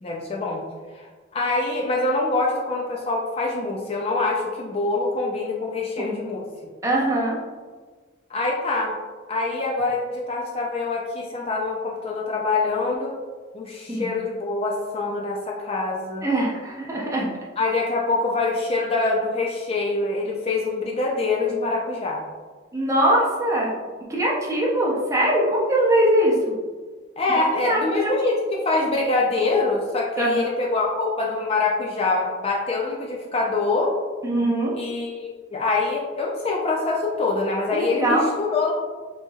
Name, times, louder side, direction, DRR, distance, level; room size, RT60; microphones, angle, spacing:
voice 1, 0.0-0.6 0.9-1.1 1.3-6.4 8.3-8.9 9.3-13.2 13.5-16.3 17.6-22.2 27.2-33.9 34.7-38.8, left 3 dB, 30° left, -2 dB, 0.4 m, -24 dB
voice 2, 6.8-7.4 13.9-14.1 16.2-17.3 22.7-23.7 24.1-26.6 27.4-28.1 30.2-30.5 34.2-34.8 37.7-38.3, right 1 dB, 15° right, -4 dB, 0.6 m, -22 dB
4.4 x 2.8 x 2.3 m, 1.4 s
head